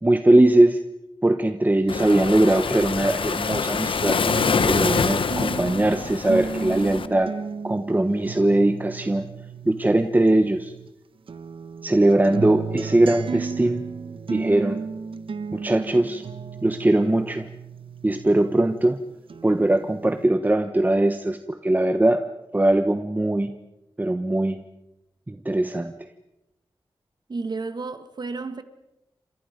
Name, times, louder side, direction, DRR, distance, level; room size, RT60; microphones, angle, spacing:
voice 1, 0.0-0.8 1.2-4.2 4.7-7.3 7.6-9.2 9.7-10.7 11.8-13.8 14.3-14.8 15.5-16.2 16.6-17.5 18.0-19.0 19.4-22.2 22.5-23.5 24.0-24.6 25.3-25.9, right 1 dB, 20° right, 1.2 m, -20 dB
Waves surf, 1.9-7.1, left 5 dB, 70° left, 1.2 m, -25 dB
sound 1, 4.3-10.9 11.3-18.9 19.3-20.3, right 5 dB, 80° right, 1.2 m, -34 dB
voice 2, 27.3-28.6, right 3 dB, 50° right, 1.8 m, -31 dB
28.5 x 27.0 x 5.3 m
wide cardioid pair, 105°, 9 cm